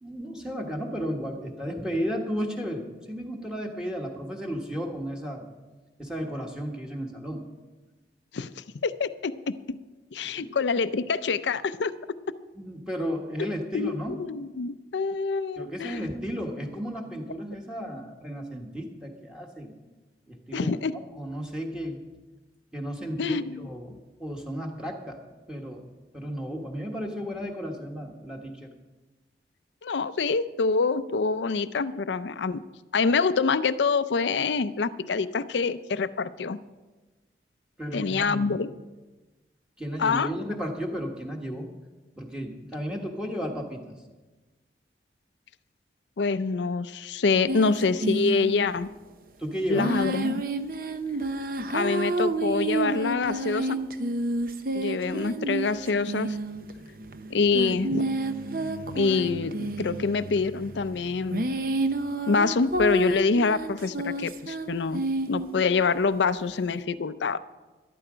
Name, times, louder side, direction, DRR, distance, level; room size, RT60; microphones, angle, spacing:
voice 1, 0.0-5.5 6.0-7.5 10.2-10.5 12.5-14.2 15.6-19.7 20.3-20.7 21.2-22.0 22.7-25.2 25.5-25.9 26.1-28.7 37.8-38.6 39.8-41.7 42.1-43.9 49.4-49.9, equal, 5° right, 0 dB, 1.4 m, -34 dB
voice 2, 8.3-9.3 9.7-9.8 10.1-11.9 13.7-16.1 20.5-21.0 23.2-23.6 29.8-32.6 32.9-36.6 37.9-38.7 40.0-40.3 46.2-48.9 49.7-50.4 51.7-53.8 54.7-56.4 57.3-58.1 58.9-61.5 62.3-65.0 65.3-67.4, left 4 dB, 80° left, 14 dB, 0.5 m, -26 dB
sound 1, 47.5-48.8 49.8-65.6, right 2 dB, 50° right, 0.7 m, -30 dB
13.0 x 12.0 x 5.0 m, 1.2 s
head